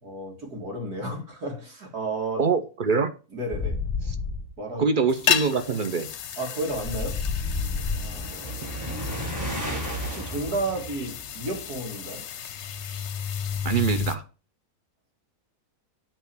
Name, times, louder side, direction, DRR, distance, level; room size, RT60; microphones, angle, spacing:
voice 1, 0.0-2.5 3.3-3.8 4.6-4.9 6.4-7.2 7.9-8.5 10.0-12.2, right 2 dB, 75° right, 2.8 m, -32 dB
voice 2, 2.4-3.1 4.0-4.1 4.8-6.1 13.6-14.2, right 5 dB, 45° right, 0.7 m, -24 dB
sound 1, 3.5-4.5 6.7-8.3 12.5-14.1, left 5 dB, 25° left, 0.7 m, -30 dB
sound 2, 5.1-14.2, left 9 dB, 55° left, 0.9 m, -33 dB
sound 3, 6.6-11.9, right 1 dB, 10° right, 1.5 m, -35 dB
9.0 x 3.8 x 6.9 m
omnidirectional pair, 1.6 m